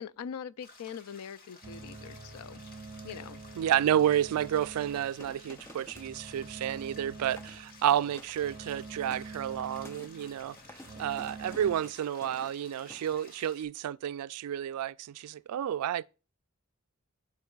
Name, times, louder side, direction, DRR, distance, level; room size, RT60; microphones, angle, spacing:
voice 1, 0.0-2.6 3.0-3.4, left 7 dB, 80° left, 0.4 m, -42 dB
sound 1, 0.6-13.6, left 3 dB, 45° left, 1.5 m, -55 dB
sound 2, 1.6-11.8, right 3 dB, 20° right, 1.9 m, -47 dB
voice 2, 3.6-10.6 11.0-16.0, right 10 dB, 80° right, 0.3 m, -30 dB
sound 3, 4.3-6.1 6.4-6.9 7.2-7.6 7.9-8.4 8.8-13.5, left 1 dB, 10° left, 0.4 m, -52 dB
12.5 x 4.6 x 2.3 m
head